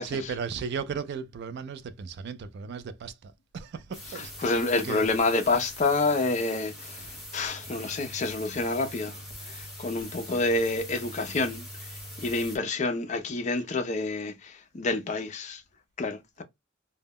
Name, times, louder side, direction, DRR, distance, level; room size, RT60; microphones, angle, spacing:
voice 1, 0.0-5.1, right 6 dB, 50° right, 0.3 m, -36 dB
sound 1, 3.9-12.6, equal, ahead, 0.9 m, -42 dB
voice 2, 4.4-11.9 12.2-15.6 16.0-16.4, left 3 dB, 35° left, 0.4 m, -28 dB
2.1 x 2.0 x 3.4 m
head